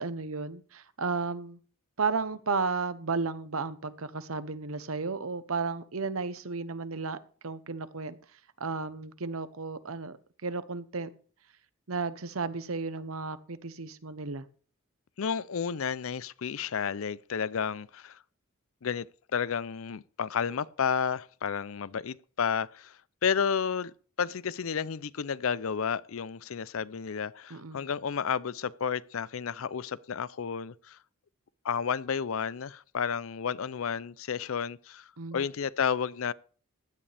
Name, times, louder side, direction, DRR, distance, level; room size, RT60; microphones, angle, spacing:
voice 1, 0.0-1.6 2.0-7.2 7.4-8.2 8.6-11.1 11.9-14.5 27.5-27.8 35.2-35.4, right 4 dB, 80° right, 1.0 m, -33 dB
voice 2, 15.2-18.2 18.8-19.1 19.3-23.0 23.2-23.9 24.2-31.0 31.6-36.3, left 7 dB, 70° left, 0.5 m, -31 dB
16.0 x 11.5 x 3.4 m
head